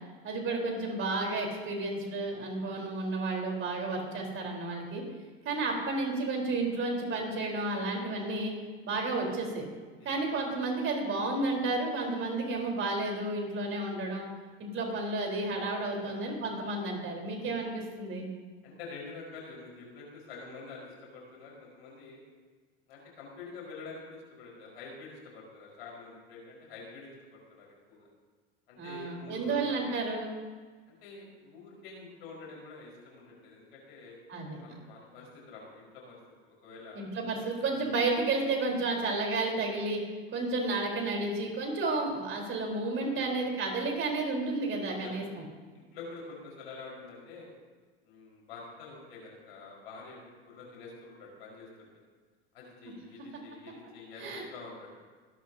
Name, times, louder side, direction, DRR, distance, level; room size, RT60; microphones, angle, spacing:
voice 1, 0.2-5.0 5.4-8.5 8.8-9.6 10.0-14.2 14.6-18.3 28.8-30.3 34.3-34.6 36.9-40.0 40.3-45.4 54.2-54.4, right 2 dB, 40° right, 0 dB, 4.1 m, -32 dB
voice 2, 10.0-10.3 18.6-22.2 22.9-28.1 28.7-29.8 31.0-34.2 34.6-36.2 36.4-37.1 37.7-37.9 40.7-41.0 43.1-43.5 44.9-45.2 45.7-47.5 48.0-51.9 52.5-54.9, left 4 dB, 80° left, -2 dB, 4.9 m, -47 dB
23.5 x 12.0 x 2.8 m, 1.4 s
hypercardioid pair, 85°, 30 cm